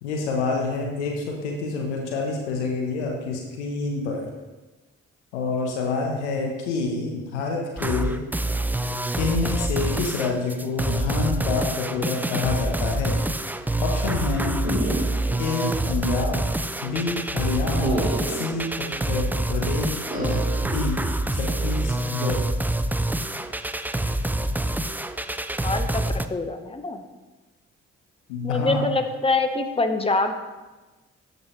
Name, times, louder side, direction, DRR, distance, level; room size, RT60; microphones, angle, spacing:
voice 1, 0.0-4.3 5.3-8.2 9.2-13.2 13.8-14.6 15.4-16.5 16.8-21.0 21.3-22.4 28.3-28.8, left 4 dB, 85° left, 1 dB, 1.0 m, -27 dB
sound 1, 7.8-26.3, right 1 dB, 5° right, 0.4 m, -26 dB
sound 2, 14.6-15.5 15.8-15.9 17.8-18.6 20.1-20.6, right 1 dB, 25° right, 2.9 m, -28 dB
voice 2, 25.6-26.0 26.3-27.0 28.4-30.4, left 3 dB, 15° left, 7 dB, 1.0 m, -25 dB
12.0 x 5.4 x 3.1 m, 1.2 s
hypercardioid pair, 40°, 34 cm